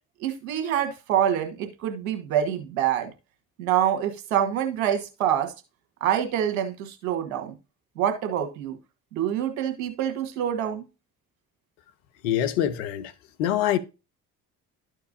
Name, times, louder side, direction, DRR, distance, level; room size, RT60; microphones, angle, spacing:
voice 1, 0.2-3.1 3.6-5.5 6.0-7.5 8.0-8.8 9.1-10.8, right 10 dB, 90° right, 1.4 m, -26 dB
voice 2, 12.2-13.1 13.4-13.8, left 11 dB, 80° left, 0.9 m, -24 dB
12.5 x 4.6 x 2.6 m
hypercardioid pair, 50°, 41 cm